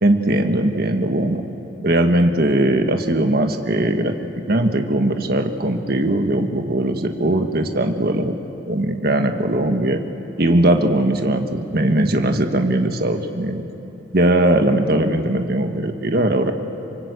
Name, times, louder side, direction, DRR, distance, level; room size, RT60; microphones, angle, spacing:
voice 1, 0.0-1.4 1.8-8.3 8.7-10.0 10.4-13.6 14.1-16.5, right 1 dB, 55° right, 5 dB, 1.5 m, -19 dB
25.5 x 24.0 x 8.3 m, 2.9 s
head